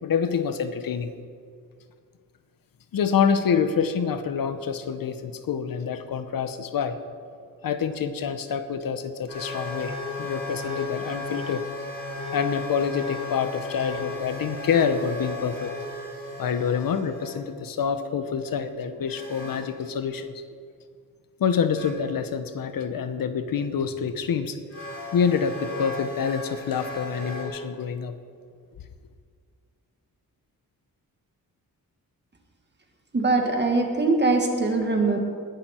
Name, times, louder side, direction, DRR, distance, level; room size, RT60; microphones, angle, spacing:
voice 1, 0.0-1.1 2.9-7.0 7.6-11.6 12.3-15.7 16.4-20.4 21.4-24.6 25.1-28.1, left 6 dB, 65° left, 10 dB, 0.9 m, -27 dB
sound 1, 9.3-17.4 19.1-19.7 21.7-21.9 23.9-24.0 24.7-27.4, left 2 dB, 40° left, 4.2 m, -35 dB
voice 2, 33.1-35.2, right 3 dB, 30° right, 2 dB, 1.9 m, -22 dB
19.5 x 11.0 x 4.4 m, 2.1 s
wide cardioid pair, 150°, 36 cm